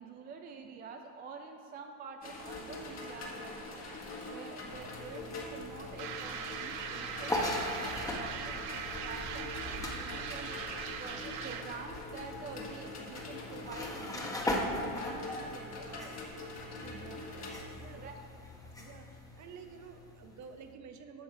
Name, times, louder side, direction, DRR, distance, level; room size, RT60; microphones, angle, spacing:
voice 1, 0.0-10.6 11.0-16.2 16.8-18.2, right 5 dB, 25° right, 4 dB, 0.3 m, -48 dB
sound 1, 2.2-17.6, left 2 dB, 35° left, 1.7 m, -44 dB
sound 2, 4.7-20.7, left 1 dB, 5° left, 1.0 m, -41 dB
sound 3, 6.0-11.8, right 7 dB, 80° right, 1.0 m, -40 dB
voice 2, 17.8-18.1 18.8-21.2, right 6 dB, 40° right, 7 dB, 0.9 m, -50 dB
9.7 x 6.1 x 4.9 m, 2.7 s
supercardioid pair, 110°, 46 cm